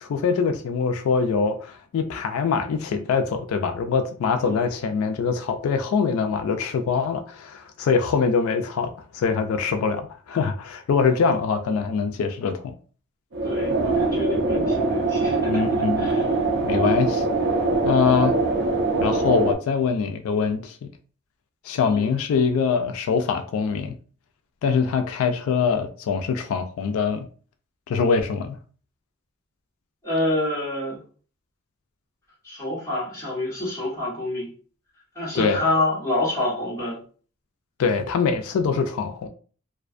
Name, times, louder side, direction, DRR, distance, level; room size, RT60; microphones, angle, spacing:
voice 1, 0.0-12.7 15.5-16.1 16.6-17.2 17.8-18.4 19.0-20.9 21.6-24.0 24.6-27.3 27.9-28.6 35.3-35.6 37.8-39.3, left 5 dB, 85° left, 0.3 m, -23 dB
sound 1, 13.3-19.5, right 3 dB, 55° right, 0.4 m, -23 dB
voice 2, 13.4-15.6 16.0-16.2 21.9-22.1 30.0-31.0 32.4-34.5 35.1-37.0, left 2 dB, 15° left, 1.2 m, -27 dB
2.4 x 2.2 x 2.4 m
head